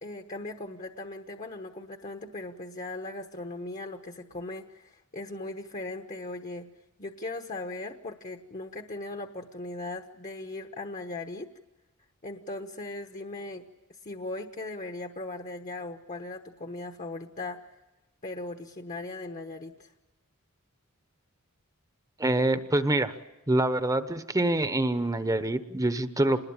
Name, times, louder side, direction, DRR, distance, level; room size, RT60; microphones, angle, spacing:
voice 1, 0.0-6.7 7.0-11.5 12.2-13.7 14.0-17.7 18.2-19.9, left 2 dB, 35° left, 6 dB, 1.2 m, -38 dB
voice 2, 22.2-23.1 23.5-26.4, right 1 dB, 15° right, 10 dB, 1.0 m, -25 dB
27.5 x 21.0 x 8.9 m, 1.0 s
head